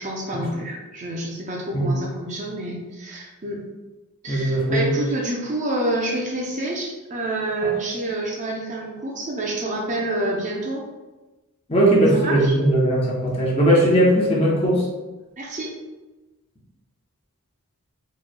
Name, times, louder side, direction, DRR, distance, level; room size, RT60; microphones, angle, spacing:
voice 1, 0.0-3.6 4.2-10.8 12.2-12.5 15.4-15.7, right 1 dB, 35° right, -1 dB, 0.6 m, -28 dB
voice 2, 4.3-4.9 7.6-7.7 11.7-14.9, right 1 dB, 25° left, -4 dB, 0.8 m, -19 dB
4.4 x 3.1 x 2.2 m, 1.1 s
head